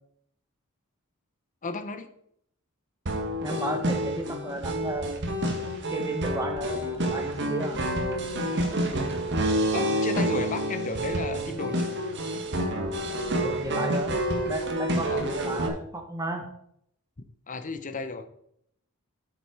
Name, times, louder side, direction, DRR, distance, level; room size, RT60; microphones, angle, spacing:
voice 1, 1.6-2.1 9.7-11.9 15.1-15.2 17.5-18.2, left 4 dB, 35° left, 9 dB, 0.8 m, -33 dB
sound 1, 3.1-15.7, right 1 dB, 55° right, 1.5 m, -28 dB
voice 2, 3.4-5.3 5.9-7.8 13.3-16.4, right 1 dB, 15° right, 3 dB, 1.4 m, -34 dB
8.6 x 7.1 x 4.7 m, 0.70 s
head